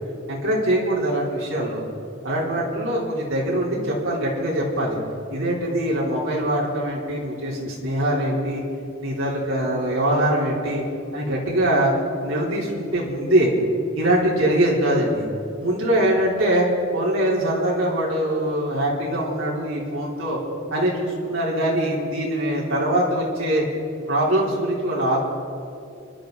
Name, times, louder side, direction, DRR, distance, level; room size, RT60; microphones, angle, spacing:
voice 1, 0.3-1.8 2.2-5.0 5.3-8.6 9.0-10.8 11.1-11.9 12.2-13.5 13.9-15.2 15.6-16.7 16.9-20.4 20.7-23.7 24.1-25.2, right 1 dB, 75° right, -5 dB, 3.4 m, -23 dB
28.5 x 12.0 x 3.9 m, 2.5 s
head